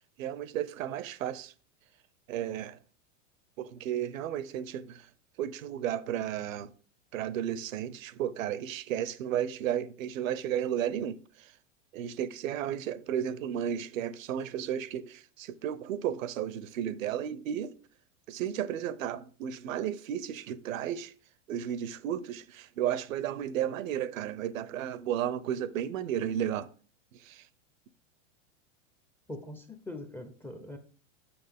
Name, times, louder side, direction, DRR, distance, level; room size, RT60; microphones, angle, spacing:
voice 1, 0.2-1.5 2.3-2.8 3.6-5.1 5.4-6.7 7.1-11.5 11.9-17.7 18.3-21.1 21.5-26.7 27.1-27.5, right 10 dB, 85° right, 0.7 m, -33 dB
voice 2, 29.3-30.8, left 1 dB, 5° left, 0.5 m, -42 dB
7.0 x 6.1 x 3.5 m
supercardioid pair, 130°, 39 cm